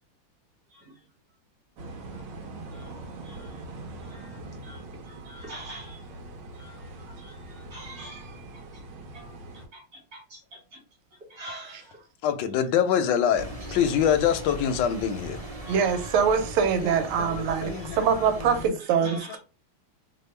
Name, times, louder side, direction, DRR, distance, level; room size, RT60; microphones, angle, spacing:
voice 1, 0.7-1.0 2.1-2.2 2.7-2.9 3.2-3.6 4.0-6.1 6.5-8.8 9.1-9.4 9.7-10.8 11.1-12.1 13.6-13.8 15.6-16.5 17.5-18.0 18.8-19.4, right 1 dB, 50° right, 1.5 m, -46 dB
sound 1, 1.8-9.7, right 2 dB, 65° right, 1.2 m, -42 dB
voice 2, 12.2-15.4 16.8-16.9 17.2-18.0 18.4-18.6 19.1-19.2, left 8 dB, 75° left, 1.0 m, -25 dB
sound 2, 13.4-18.7, right 1 dB, 35° right, 0.6 m, -39 dB
voice 3, 15.7-19.4, right 7 dB, 85° right, 1.5 m, -24 dB
3.4 x 2.1 x 4.3 m
omnidirectional pair, 2.4 m